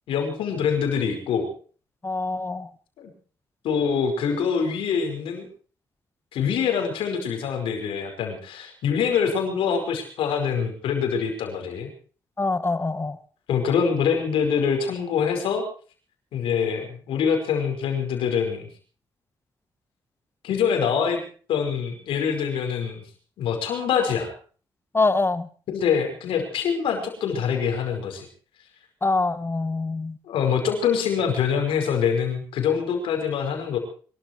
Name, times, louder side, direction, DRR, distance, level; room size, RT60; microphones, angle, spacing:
voice 1, 0.1-1.5 3.6-5.5 6.3-11.9 13.5-15.6 16.3-18.7 20.4-21.2 21.5-23.0 23.4-24.3 25.7-28.3 30.3-33.8, left 7 dB, 90° left, 5 dB, 5.1 m, -24 dB
voice 2, 2.0-2.7 12.4-13.2 24.9-25.5 29.0-30.2, left 3 dB, 25° left, 14 dB, 1.5 m, -24 dB
24.0 x 13.0 x 4.5 m, 0.40 s
cardioid pair, 65°, 9 cm